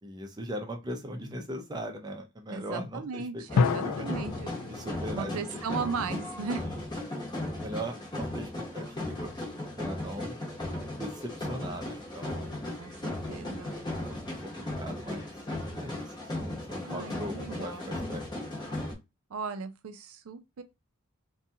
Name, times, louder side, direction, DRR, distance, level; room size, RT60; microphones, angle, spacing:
voice 1, 0.0-4.1 4.7-5.6 6.6-6.8 7.5-9.3 9.8-10.4 10.9-12.6 13.7-15.3 15.6-18.3, equal, 20° right, 0.5 m, -40 dB
voice 2, 2.5-4.3 5.1-6.6 12.8-13.7 16.8-17.9 19.3-20.6, right 5 dB, 75° right, 0.4 m, -37 dB
sound 1, 3.5-6.3, left 5 dB, 85° left, 0.3 m, -31 dB
sound 2, 3.5-18.9, left 1 dB, 20° left, 0.8 m, -36 dB
2.6 x 2.2 x 2.7 m
head